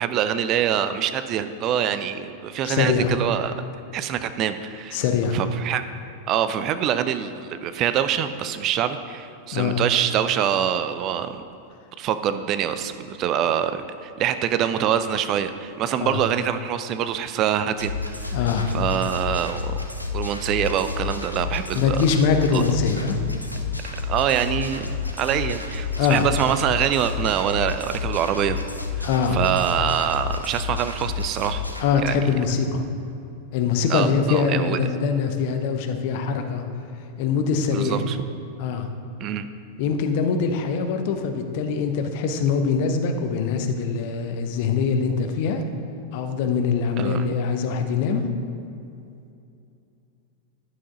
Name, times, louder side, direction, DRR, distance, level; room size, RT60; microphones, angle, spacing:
voice 1, 0.0-3.5 3.9-5.0 5.3-5.8 6.3-11.4 12.0-18.4 18.7-19.8 20.1-22.0 22.5-22.6 24.1-28.6 29.0-31.6 32.0-32.2 33.9-34.8 37.7-38.2 39.2-39.5 47.0-47.2, right 9 dB, 35° right, 11 dB, 0.4 m, -25 dB
voice 2, 2.6-3.1 4.9-5.4 9.5-9.8 16.0-16.2 18.3-18.7 21.7-23.2 26.0-26.2 29.0-29.4 31.8-32.9 33.5-36.6 37.2-38.1 38.6-38.9 39.8-45.6 46.1-48.2, left 5 dB, 50° left, 6 dB, 0.7 m, -23 dB
sound 1, 17.8-31.8, left 5 dB, 90° left, 0.6 m, -30 dB
11.0 x 6.1 x 4.0 m, 2.6 s
figure-of-eight pair, 90°, 0 cm